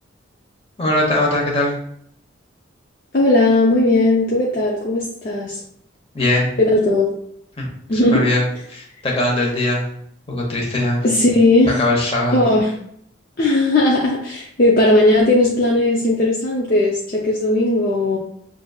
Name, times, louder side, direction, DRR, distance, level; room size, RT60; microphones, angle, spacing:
voice 1, 0.8-1.7 6.1-6.5 7.6-9.8 10.3-11.0 11.6-12.4, left 1 dB, 30° left, -2 dB, 1.0 m, -20 dB
voice 2, 3.1-5.6 6.6-7.1 7.9-8.3 11.0-11.7 12.3-12.7 13.4-18.2, left 2 dB, 45° left, -3 dB, 0.5 m, -17 dB
6.1 x 2.5 x 2.3 m, 0.69 s
head